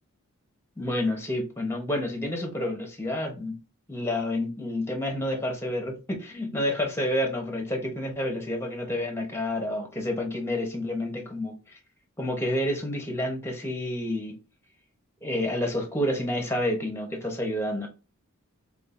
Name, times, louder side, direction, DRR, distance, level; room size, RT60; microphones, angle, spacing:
voice 1, 0.8-3.6 3.9-11.8 12.2-14.4 15.2-17.9, left 1 dB, 10° left, 0.9 m, -29 dB
5.3 x 2.5 x 2.5 m
head